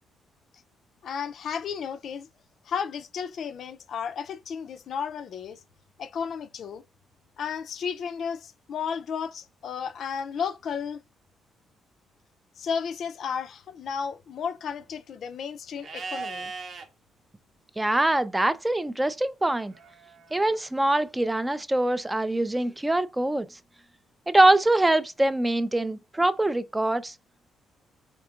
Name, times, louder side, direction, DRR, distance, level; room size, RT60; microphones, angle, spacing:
voice 1, 1.0-2.3 2.7-5.6 6.0-6.8 7.4-11.0 12.6-16.5, left 7 dB, 65° left, 0.3 m, -33 dB
Livestock farm animals working animals, 15.8-16.9 19.7-20.7, right 4 dB, 55° right, 0.7 m, -38 dB
voice 2, 17.8-19.7 20.3-23.5 24.3-27.1, right 1 dB, 15° right, 0.3 m, -23 dB
3.7 x 3.5 x 2.3 m
cardioid pair, 90°, 0 cm